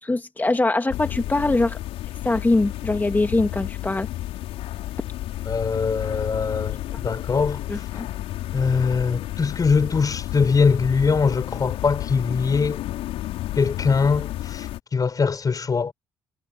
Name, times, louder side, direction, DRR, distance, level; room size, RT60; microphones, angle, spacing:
voice 1, 0.0-1.8 2.2-4.1 7.7-8.1, left 2 dB, 15° left, 2.3 m, -22 dB
sound 1, 0.9-14.8, left 15 dB, 70° left, 4.9 m, -31 dB
voice 2, 5.4-7.9 8.5-12.8 13.5-15.9, left 5 dB, 35° left, 5.0 m, -22 dB
hypercardioid pair, 55°, 10 cm